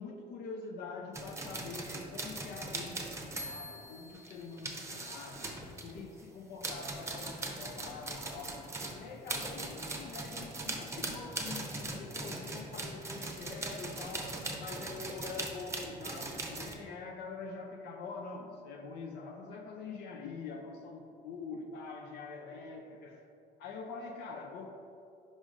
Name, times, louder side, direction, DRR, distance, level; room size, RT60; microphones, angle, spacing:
voice 1, 0.0-5.5 5.8-8.6 8.9-23.2 23.6-24.7, left 4 dB, 80° left, 2 dB, 0.6 m, -45 dB
sound 1, 1.1-6.2 6.6-16.7, right 2 dB, 15° right, 0.7 m, -40 dB
5.1 x 4.9 x 3.8 m, 2.6 s
cardioid pair, 110°, 17 cm